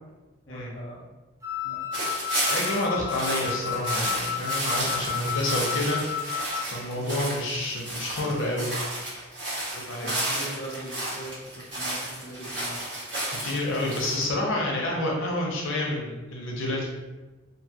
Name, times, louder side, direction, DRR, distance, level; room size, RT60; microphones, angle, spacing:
voice 1, 0.4-1.1 1.6-1.8 6.9-7.2 10.0-12.8, right 1 dB, 30° left, -6 dB, 0.6 m, -40 dB
Wind instrument woodwind instrument, 1.4-6.8, left 9 dB, 15° right, 0.3 m, -32 dB
sound 1, 1.9-14.3, right 1 dB, 70° right, 1.1 m, -32 dB
voice 2, 2.5-8.7 9.7-10.1 13.3-16.9, left 1 dB, 85° left, -2 dB, 0.6 m, -29 dB
2.5 x 2.3 x 2.7 m, 1.2 s
head